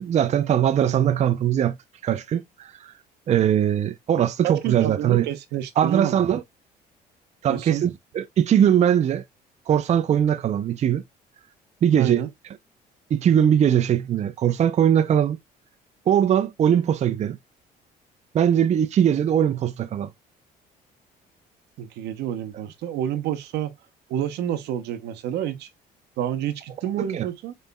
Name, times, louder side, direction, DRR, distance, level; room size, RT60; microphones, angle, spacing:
voice 1, 0.0-1.8 2.0-2.9 3.3-5.3 5.8-6.4 7.4-9.2 9.7-11.0 11.8-12.2 13.1-15.4 16.1-17.4 18.3-20.1 27.1-27.3, right 9 dB, 40° right, 0.5 m, -21 dB
voice 2, 4.4-6.2 7.5-7.9 12.0-12.3 21.8-23.7 24.1-25.7 26.2-27.5, right 10 dB, 80° right, 0.8 m, -29 dB
5.4 x 3.2 x 2.2 m
cardioid pair, 110°, 17 cm